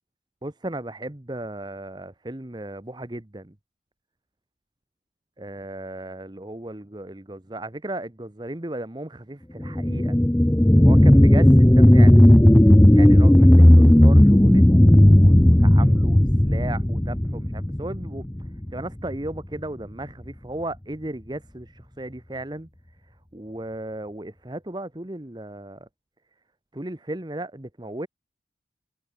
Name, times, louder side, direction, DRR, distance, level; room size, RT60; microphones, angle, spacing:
voice 1, 0.4-3.5 5.4-10.2 10.8-12.2 12.9-25.9 26.7-28.1, right 1 dB, 25° right, 1.1 m, -36 dB
sound 1, 9.6-18.7 19.1-19.2, left 1 dB, 10° left, 0.5 m, -14 dB
head